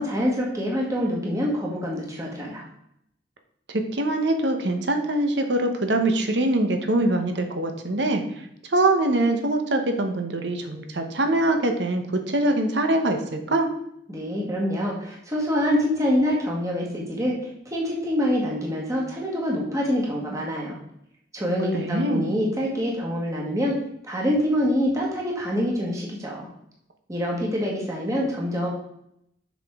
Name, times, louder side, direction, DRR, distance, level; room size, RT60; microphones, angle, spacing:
voice 1, 0.0-2.6 14.1-20.8 21.3-23.7 24.0-26.5 27.1-28.7, equal, 20° right, -3 dB, 1.6 m, -25 dB
voice 2, 3.7-8.2 8.7-13.7 21.7-22.3, right 2 dB, 70° right, 5 dB, 1.1 m, -23 dB
7.3 x 6.0 x 3.7 m, 0.75 s
head